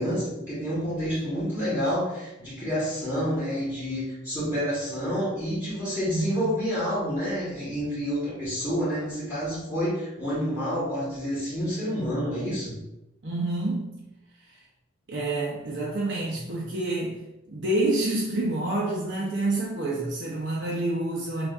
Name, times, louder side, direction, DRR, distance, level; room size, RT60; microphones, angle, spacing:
voice 1, 0.0-12.8, equal, 15° left, -11 dB, 1.2 m, -28 dB
voice 2, 6.1-6.4 13.2-14.0 15.1-17.2 17.5-21.5, right 2 dB, 60° right, -3 dB, 0.6 m, -28 dB
6.0 x 2.5 x 2.4 m, 0.96 s
head